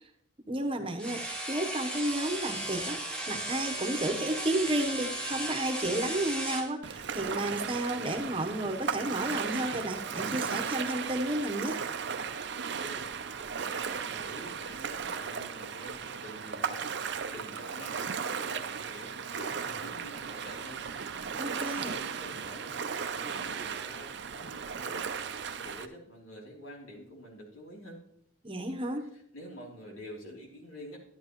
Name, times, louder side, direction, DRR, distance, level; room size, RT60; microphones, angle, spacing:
voice 1, 0.5-3.0 3.3-11.8 21.3-21.9 28.4-29.1, right 1 dB, 25° right, 5 dB, 0.9 m, -32 dB
sound 1, 1.0-6.7, right 1 dB, 5° left, 1.3 m, -35 dB
Ocean, 6.8-25.9, right 6 dB, 55° right, 0.5 m, -36 dB
voice 2, 12.8-13.1 13.5-16.9 17.3-18.0 18.4-20.9 21.4-25.1 25.3-28.0 29.1-31.0, equal, 85° left, -1 dB, 3.1 m, -48 dB
12.0 x 10.5 x 3.0 m, 0.73 s
head